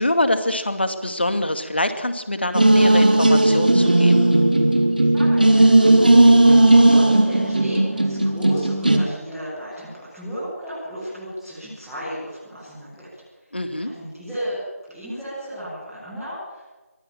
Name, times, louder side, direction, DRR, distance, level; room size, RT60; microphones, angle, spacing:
voice 1, 0.0-4.3 13.5-13.9, left 1 dB, 45° left, 9 dB, 2.2 m, -24 dB
sound 1, 2.5-9.0, right 1 dB, 35° right, 2.1 m, -15 dB
voice 2, 5.1-5.9 6.2-13.0 13.7-14.6 14.8-16.7, equal, ahead, -17 dB, 1.8 m, -34 dB
22.5 x 16.5 x 8.8 m, 1.2 s
figure-of-eight pair, 175°, 8 cm